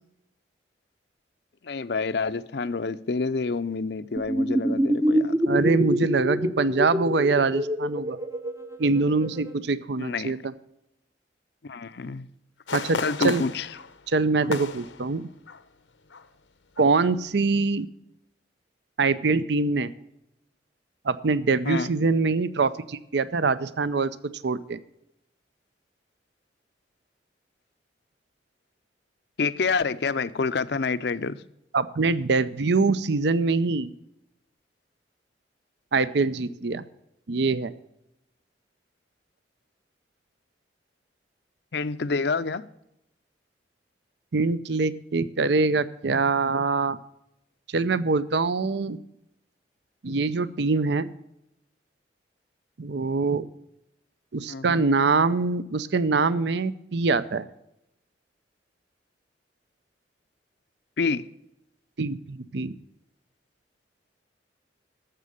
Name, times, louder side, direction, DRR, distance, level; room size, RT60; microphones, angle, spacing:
voice 1, 1.6-5.4 10.0-10.4 11.6-12.3 13.0-13.7 21.6-21.9 29.4-31.4 41.7-42.6 54.5-54.8 61.0-61.2, left 4 dB, 65° left, 0.5 m, -28 dB
sound 1, 4.2-9.5, equal, 15° right, 0.6 m, -26 dB
voice 2, 5.5-8.2 8.8-10.5 12.7-13.4 14.1-15.3 16.8-17.9 19.0-19.9 21.0-24.1 24.4-24.8 31.7-33.9 35.9-36.8 37.3-37.7 44.3-47.0 47.7-49.0 50.0-51.1 52.8-53.5 54.3-57.5 62.0-62.7, right 4 dB, 65° right, 0.6 m, -24 dB
sound 2, 12.7-15.7 16.1-16.3 16.8-17.1 17.5-17.6, left 4 dB, 85° left, 0.9 m, -34 dB
12.5 x 7.5 x 6.5 m
head